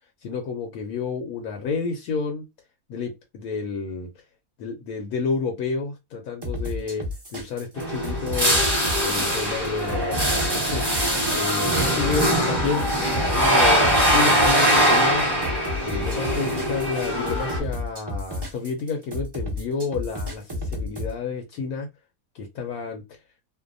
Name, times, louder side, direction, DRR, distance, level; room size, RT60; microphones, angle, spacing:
voice 1, 0.2-2.4 2.9-4.1 4.6-7.1 7.3-8.6 9.0-10.8 11.3-15.2 15.8-21.9 22.3-23.0, left 5 dB, 75° left, 3 dB, 1.0 m, -30 dB
sound 1, 6.4-21.1, left 1 dB, 35° right, 0.4 m, -31 dB
sound 2, 7.8-17.6, equal, 20° right, 1.0 m, -22 dB
2.6 x 2.1 x 2.5 m, 0.21 s
omnidirectional pair, 1.7 m